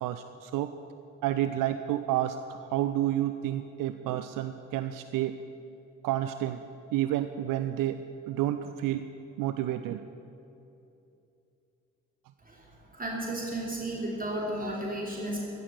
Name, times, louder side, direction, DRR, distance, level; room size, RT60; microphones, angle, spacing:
voice 1, 0.0-0.7 1.2-5.3 6.0-6.6 6.9-7.9 8.3-9.0 9.4-10.0, right 13 dB, 55° right, 10 dB, 0.6 m, -30 dB
voice 2, 12.9-15.4, right 1 dB, 20° right, -3 dB, 3.2 m, -33 dB
15.5 x 6.9 x 9.7 m, 2.8 s
figure-of-eight pair, 40°, 38 cm